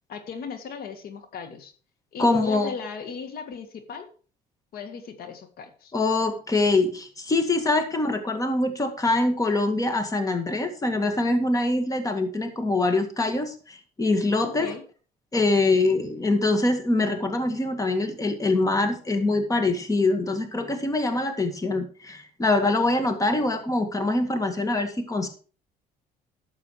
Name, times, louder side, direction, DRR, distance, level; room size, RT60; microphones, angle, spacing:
voice 1, 0.1-1.7 2.1-4.1 4.7-5.9 14.4-14.8, left 5 dB, 65° left, 8 dB, 1.9 m, -37 dB
voice 2, 2.2-2.7 5.9-14.7 15.3-25.3, left 2 dB, 20° left, 7 dB, 2.0 m, -24 dB
12.0 x 7.5 x 4.8 m, 0.38 s
cardioid pair, 110°, 17 cm